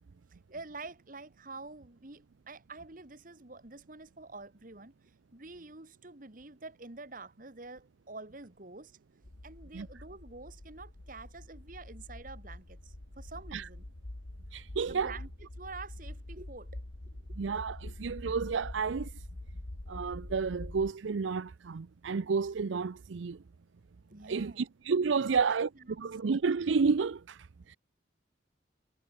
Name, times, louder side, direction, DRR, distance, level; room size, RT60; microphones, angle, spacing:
voice 1, 0.5-4.9 5.3-9.0 9.4-13.8 14.9-15.3 15.6-16.8 24.1-24.7 25.2-25.6 25.9-26.0, right 3 dB, 45° right, 1.7 m, -47 dB
sound 1, 9.2-20.9, left 1 dB, 75° left, 1.6 m, -45 dB
voice 2, 14.5-15.2 17.4-19.1 19.9-23.4 24.2-27.8, right 5 dB, 85° right, 0.5 m, -31 dB
head